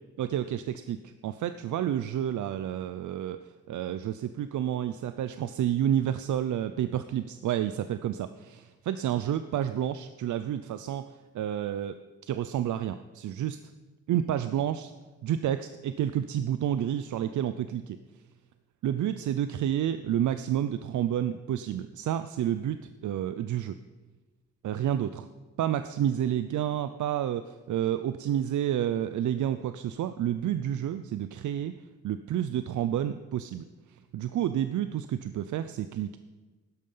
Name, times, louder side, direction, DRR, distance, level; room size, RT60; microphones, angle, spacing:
voice 1, 0.2-3.4 3.7-11.1 11.3-11.9 12.3-13.6 14.1-14.9 15.2-18.0 18.8-23.8 24.6-25.3 25.6-31.7 32.0-33.6 34.1-36.2, right 10 dB, 85° right, 11 dB, 0.6 m, -30 dB
15.5 x 12.5 x 5.6 m, 1.3 s
wide cardioid pair, 150°, 29 cm